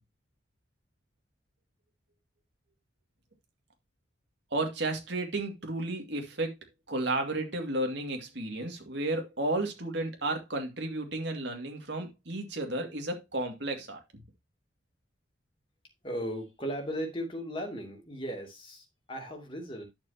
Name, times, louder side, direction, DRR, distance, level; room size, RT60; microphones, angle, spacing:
voice 1, 4.5-6.6 6.9-14.0, right 2 dB, 60° right, 2.4 m, -33 dB
voice 2, 16.0-19.9, equal, 25° left, 2.8 m, -37 dB
10.5 x 7.1 x 2.9 m
head